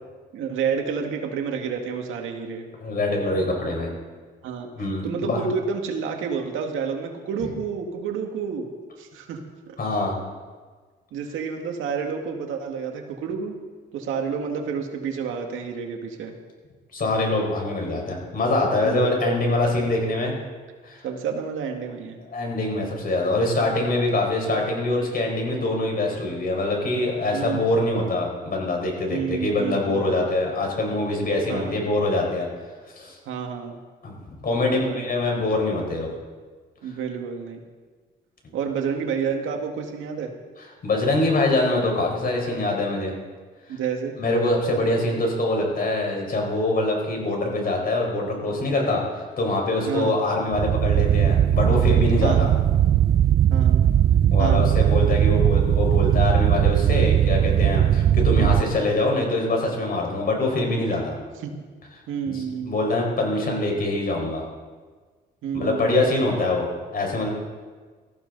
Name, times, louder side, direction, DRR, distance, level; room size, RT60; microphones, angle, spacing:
voice 1, 0.3-2.6 4.4-4.7 5.0-8.7 9.0-9.8 11.1-13.6 13.9-16.3 18.8-19.2 21.0-22.2 27.3-27.6 29.1-30.0 31.5-31.7 33.3-33.8 34.6-35.1 36.8-37.6 38.5-40.3 43.7-44.1 49.9-50.2 52.2-52.5 53.5-53.9 54.4-54.7 58.3-58.5 61.4-61.5 62.1-62.8 65.4-66.1, right 6 dB, 85° right, 3 dB, 2.0 m, -29 dB
voice 2, 2.8-3.9 4.8-5.4 9.8-10.2 16.9-20.4 20.8-21.0 22.3-32.5 33.0-33.2 34.0-34.2 34.4-36.1 40.8-43.1 43.7-43.8 44.2-52.5 54.3-61.2 62.3-64.4 65.5-67.3, left 2 dB, 50° left, 0 dB, 5.3 m, -24 dB
sound 1, 50.5-58.6, right 10 dB, 50° right, 0.5 m, -19 dB
19.0 x 14.5 x 4.1 m, 1.5 s
cardioid pair, 90°, 20 cm